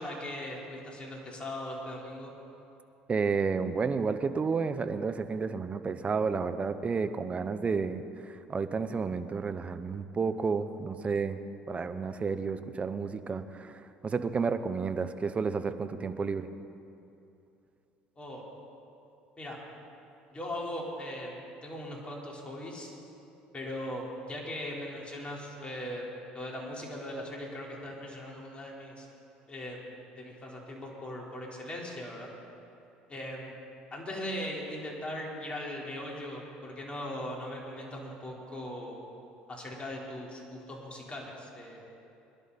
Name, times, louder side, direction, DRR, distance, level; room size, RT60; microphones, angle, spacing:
voice 1, 0.0-2.3 18.2-18.4 19.4-19.6 20.3-22.9 23.5-26.0 26.3-29.1 29.5-32.3 33.1-33.6 33.9-39.0 39.5-41.8, left 1 dB, 30° left, -2 dB, 4.3 m, -39 dB
voice 2, 3.1-11.4 11.7-16.5, right 5 dB, 30° right, 10 dB, 1.0 m, -31 dB
22.5 x 11.5 x 4.3 m, 2.8 s
hypercardioid pair, 70°, 4 cm